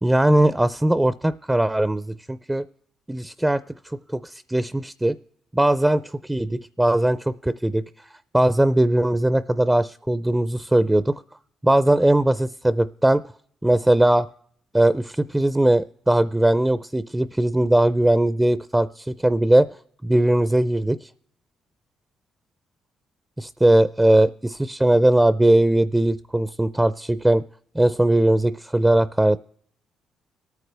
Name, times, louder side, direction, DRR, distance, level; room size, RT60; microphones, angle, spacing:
voice 1, 0.0-2.6 3.1-3.6 4.1-5.2 5.5-7.8 8.3-11.2 11.6-13.2 13.6-14.3 14.7-19.7 20.0-21.1 23.4-27.4 27.7-29.4, right 1 dB, 10° right, 14 dB, 0.4 m, -19 dB
26.0 x 9.3 x 3.3 m, 0.66 s
cardioid pair, 90°, 0 cm